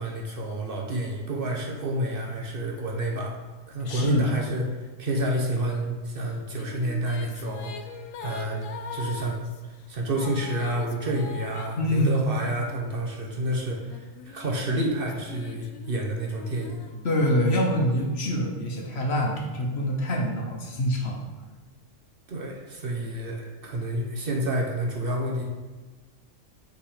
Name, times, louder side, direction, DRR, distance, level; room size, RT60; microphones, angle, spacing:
voice 1, 0.0-3.3 3.7-7.9 8.2-8.6 8.9-9.4 9.6-16.9 22.3-25.4, right 1 dB, 50° right, 0 dB, 1.0 m, -29 dB
voice 2, 3.8-4.4 11.7-12.2 17.0-21.2, equal, 55° left, 0 dB, 1.2 m, -25 dB
sound 1, 6.2-13.2 13.9-17.6, left 6 dB, 85° left, 1.0 m, -42 dB
5.9 x 4.0 x 4.9 m, 1.3 s
omnidirectional pair, 1.3 m